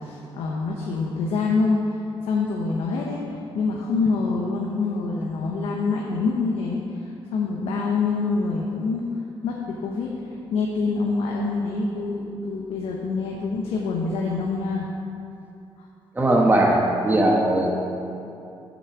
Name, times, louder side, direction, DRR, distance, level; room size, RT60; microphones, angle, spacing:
voice 1, 0.0-1.8 2.2-9.0 9.4-10.1 10.5-14.9 15.8-15.9, left 4 dB, 90° left, -2 dB, 0.9 m, -26 dB
voice 2, 16.1-17.8, right 1 dB, 20° right, -1 dB, 1.2 m, -19 dB
8.2 x 6.3 x 7.0 m, 2.7 s
cardioid pair, 95°, 10 cm